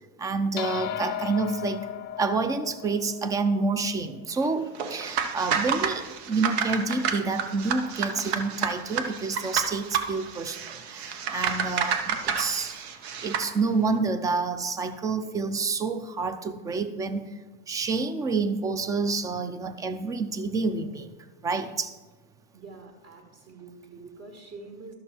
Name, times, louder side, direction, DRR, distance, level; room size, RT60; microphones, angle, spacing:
voice 1, 0.2-1.9 2.2-12.7 13.2-17.3 17.7-21.1 21.4-21.9, right 4 dB, 10° right, 11 dB, 0.3 m, -28 dB
sound 1, 0.6-5.2, left 10 dB, 35° left, 0.5 m, -37 dB
sound 2, 4.7-13.5, right 6 dB, 80° right, 1.1 m, -30 dB
voice 2, 22.5-24.9, right 3 dB, 40° right, 2 dB, 1.7 m, -45 dB
12.0 x 6.4 x 4.3 m, 1.2 s
supercardioid pair, 140°, 31 cm